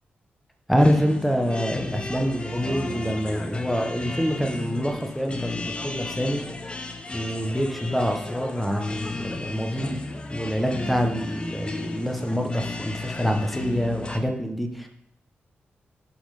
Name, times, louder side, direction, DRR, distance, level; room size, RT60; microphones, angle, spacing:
voice 1, 0.7-6.4 7.1-10.0 10.3-14.9, equal, ahead, 4 dB, 1.1 m, -26 dB
sound 1, 0.8-14.2, left 2 dB, 25° left, 0.8 m, -35 dB
6.9 x 5.3 x 5.7 m, 0.75 s
wide cardioid pair, 110°, 4 cm